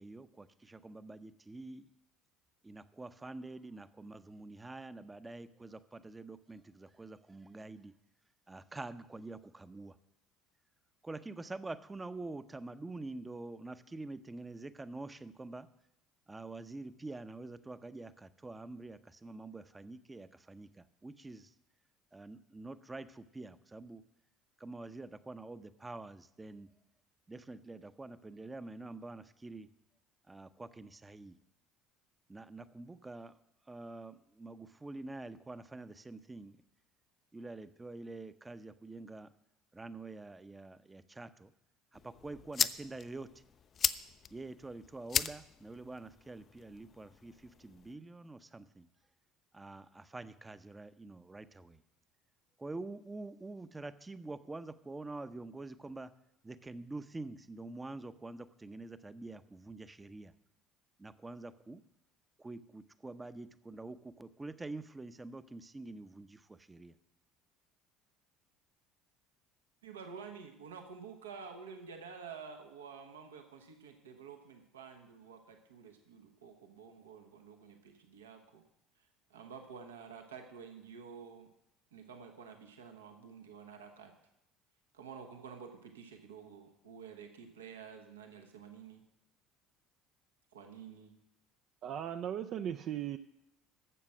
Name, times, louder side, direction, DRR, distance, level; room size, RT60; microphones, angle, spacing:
voice 1, 0.0-1.9 2.6-7.9 8.5-10.0 11.0-15.7 16.3-21.5 22.1-24.0 24.6-26.7 27.3-29.7 30.3-31.4 32.3-33.4 33.6-36.6 37.3-39.3 39.7-41.5 41.9-43.3 44.3-48.9 49.5-51.8 52.6-56.1 56.4-60.3 61.0-61.8 62.4-66.9, right 2 dB, 15° right, 13 dB, 0.7 m, -46 dB
sound 1, 41.9-47.9, left 7 dB, 40° left, 0.4 m, -38 dB
voice 2, 69.8-78.6 79.0-81.5 81.9-84.1 84.9-89.0 90.5-91.2, right 6 dB, 80° right, 5 dB, 1.1 m, -50 dB
voice 3, 91.8-93.2, right 10 dB, 50° right, 8 dB, 0.4 m, -37 dB
12.5 x 7.4 x 6.2 m, 0.83 s
figure-of-eight pair, 60°, 0 cm